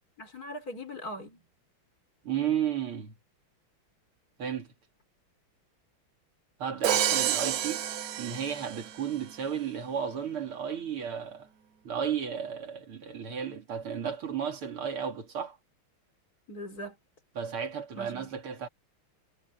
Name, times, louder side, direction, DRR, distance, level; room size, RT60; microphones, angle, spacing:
voice 1, 0.2-1.4 16.5-17.0 18.0-18.3, equal, 45° left, 4.5 m, -40 dB
voice 2, 2.2-3.1 4.4-4.7 6.6-7.9 8.2-11.5 11.8-15.6 17.4-18.7, right 8 dB, 90° right, 3.5 m, -33 dB
Crash cymbal, 6.8-9.0, right 10 dB, 55° right, 1.1 m, -29 dB
omnidirectional pair, 2.3 m